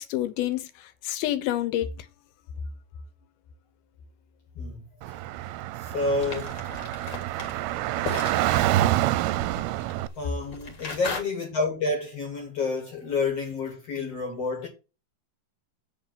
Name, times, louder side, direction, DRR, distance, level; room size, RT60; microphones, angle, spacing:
voice 1, 0.0-2.1, left 13 dB, 75° left, 2.5 m, -28 dB
voice 2, 4.6-5.2 5.8-6.7 10.2-14.7, left 3 dB, 55° left, 1.9 m, -29 dB
Car / Traffic noise roadway noise, 5.0-10.1, right 15 dB, 80° right, 2.4 m, -27 dB
sound 1, 6.2-11.2, left 4 dB, 40° left, 1.8 m, -38 dB
7.9 x 5.9 x 5.9 m
omnidirectional pair, 4.8 m